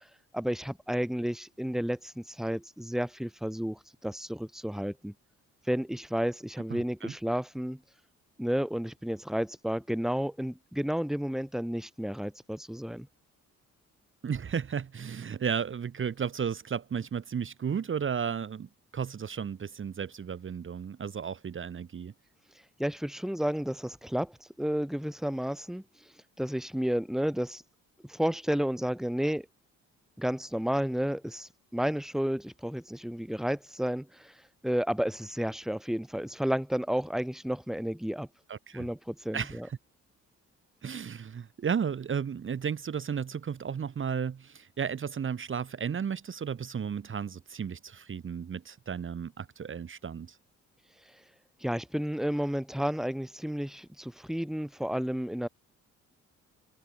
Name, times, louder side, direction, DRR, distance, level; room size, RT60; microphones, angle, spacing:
voice 1, 0.3-5.1 5.7-7.8 8.4-13.1 22.8-25.8 26.4-27.6 28.0-29.5 30.2-34.3 34.6-38.3 38.7-39.7 51.6-55.5, equal, ahead, 2.7 m, -31 dB
voice 2, 6.7-7.1 14.2-22.1 38.5-38.9 39.3-39.8 40.8-50.4, right 7 dB, 40° right, 1.7 m, -34 dB
cardioid pair, 90°, 30 cm